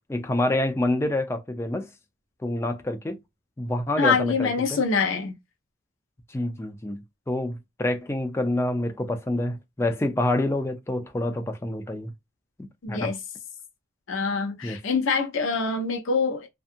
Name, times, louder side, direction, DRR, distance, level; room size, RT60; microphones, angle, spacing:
voice 1, 0.1-1.9 2.4-3.2 3.6-4.8 6.3-12.1 12.9-13.1 14.6-14.8, left 1 dB, 15° left, 0.3 m, -27 dB
voice 2, 4.0-5.4 12.8-13.2 14.1-16.5, left 4 dB, 75° left, 0.5 m, -25 dB
2.7 x 2.3 x 2.4 m
head